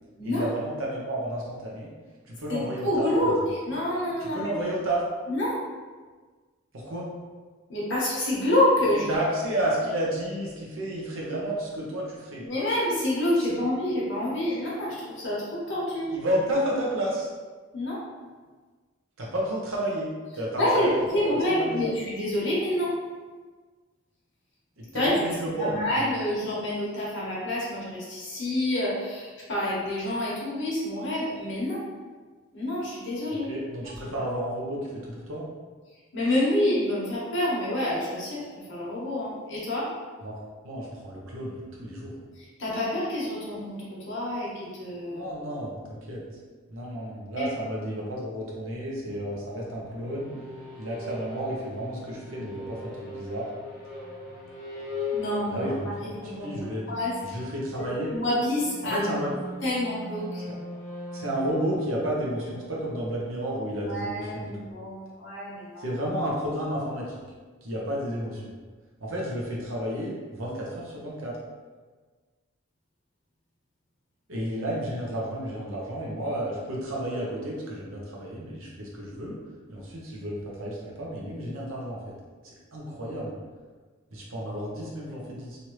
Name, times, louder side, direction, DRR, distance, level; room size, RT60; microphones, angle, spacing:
voice 1, 0.2-1.9 2.2-3.5 4.2-5.0 6.7-7.1 8.9-12.4 16.1-17.3 19.2-21.9 24.8-26.1 33.5-35.4 40.2-40.4 40.6-42.2 45.1-46.2 46.7-50.3 50.8-53.5 55.5-56.9 57.2-58.1 58.8-59.4 61.1-64.5 65.8-67.2 67.6-68.5 69.0-71.4 74.3-79.4 79.7-82.1 82.4-83.3 84.1-85.6, right 1 dB, 75° right, -4 dB, 0.8 m, -31 dB
voice 2, 2.5-3.3 3.6-4.5 5.3-5.6 7.7-9.0 12.4-16.1 17.7-18.0 20.6-22.9 24.9-25.1 25.6-31.8 32.5-33.5 36.1-38.4 38.7-39.9 42.6-43.8 44.1-45.3 47.4-47.5 55.1-55.6 56.0-57.1 58.1-59.0 59.6-60.4 63.9-65.8, left 1 dB, 60° left, -7 dB, 1.1 m, -27 dB
sound 1, 49.1-63.8, left 2 dB, 5° right, 0.8 m, -40 dB
3.1 x 2.6 x 3.0 m, 1.4 s
head